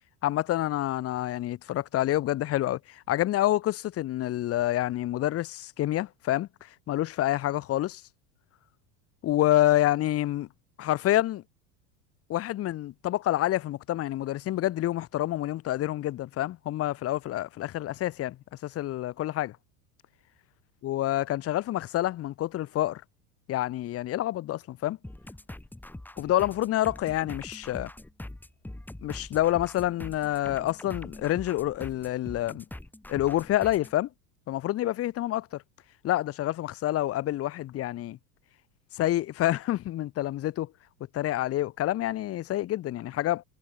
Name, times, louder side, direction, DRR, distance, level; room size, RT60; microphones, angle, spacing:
voice 1, 0.2-6.5 6.9-8.0 9.2-10.5 10.8-11.4 12.3-18.4 18.6-19.6 20.8-23.0 23.5-25.0 26.2-27.9 29.0-32.6 33.1-34.1 34.5-35.4 36.0-38.2 38.9-40.7 41.1-43.4, left 14 dB, 35° left, 0.8 m, -28 dB
sound 1, 25.0-34.0, left 1 dB, 5° left, 2.1 m, -43 dB
supercardioid pair, 105°, 41 cm